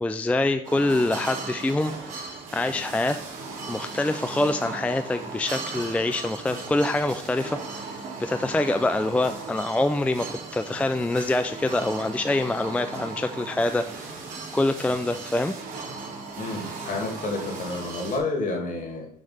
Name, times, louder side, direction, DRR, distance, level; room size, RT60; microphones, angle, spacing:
voice 1, 0.0-3.2 3.7-10.3 10.5-14.2 14.5-15.5, left 2 dB, 10° left, 8 dB, 0.3 m, -25 dB
sound 1, 0.6-18.2, right 4 dB, 50° right, 2.5 m, -37 dB
voice 2, 16.4-19.1, left 3 dB, 50° left, 2 dB, 2.3 m, -30 dB
7.2 x 3.3 x 5.6 m, 0.72 s
cardioid pair, 110°, 17 cm